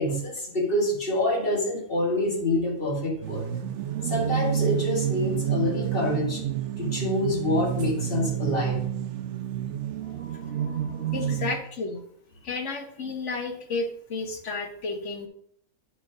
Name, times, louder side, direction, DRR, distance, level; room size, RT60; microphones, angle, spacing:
voice 1, 0.0-3.4 4.0-6.4 6.8-8.8 10.0-11.2, left 1 dB, 40° left, -1 dB, 2.2 m, -27 dB
sound 1, 3.2-11.6, right 10 dB, 65° right, 0.8 m, -29 dB
voice 2, 11.1-12.0 12.4-15.3, left 3 dB, 60° left, 5 dB, 1.3 m, -32 dB
9.5 x 4.5 x 4.8 m, 0.68 s
omnidirectional pair, 1.5 m